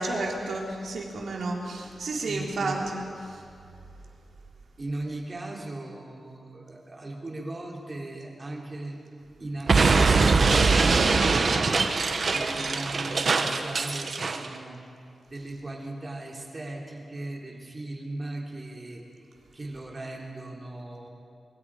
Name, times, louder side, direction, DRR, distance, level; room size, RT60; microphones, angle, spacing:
voice 1, 0.0-3.0, right 2 dB, 80° right, -1 dB, 3.4 m, -31 dB
voice 2, 2.3-2.8 4.8-9.0 9.4-19.3 19.5-21.1, right 2 dB, 30° right, -1 dB, 3.6 m, -38 dB
Explosion, 9.7-14.5, right 4 dB, 55° right, 1.3 m, -22 dB
23.5 x 23.5 x 5.0 m, 2.4 s
wide cardioid pair, 110°, 0 cm